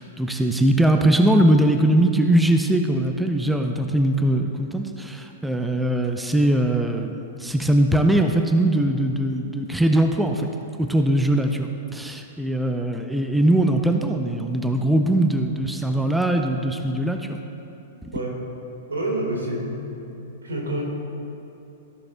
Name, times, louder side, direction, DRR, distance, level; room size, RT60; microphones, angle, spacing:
voice 1, 0.0-10.5 10.8-17.4 18.0-18.1, right 1 dB, 5° right, 4 dB, 0.5 m, -21 dB
voice 2, 18.1-18.4 18.9-20.0 20.4-20.9, right 1 dB, 85° right, -1 dB, 1.7 m, -28 dB
14.0 x 6.3 x 2.2 m, 2.9 s
hypercardioid pair, 110°, 0 cm